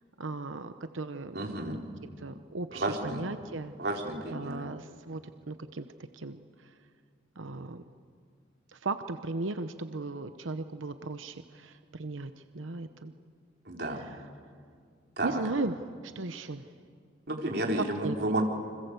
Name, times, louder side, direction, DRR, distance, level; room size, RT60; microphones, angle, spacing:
voice 1, 0.2-1.8 2.2-3.7 4.3-5.2 5.5-5.9 6.1-6.4 7.4-7.8 8.7-13.1 13.9-14.2 15.2-16.7 17.8-18.2, right 3 dB, 90° right, 9 dB, 0.9 m, -36 dB
voice 2, 1.3-1.8 2.7-3.3 3.8-4.7 13.7-14.0 15.2-15.4 17.3-18.4, right 1 dB, 55° right, 0 dB, 4.2 m, -31 dB
28.5 x 26.0 x 8.2 m, 2.2 s
head